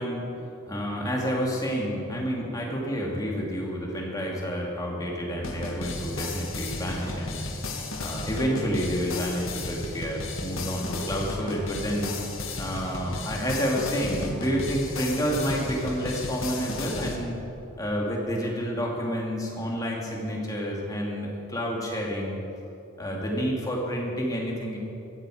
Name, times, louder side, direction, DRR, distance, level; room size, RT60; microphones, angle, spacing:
voice 1, 0.0-7.4 8.0-12.1 12.6-17.4 17.8-22.4 23.0-24.8, equal, 15° left, -2 dB, 2.5 m, -29 dB
sound 1, 5.4-17.2, left 2 dB, 70° left, 1.9 m, -34 dB
16.0 x 14.5 x 5.0 m, 2.9 s
head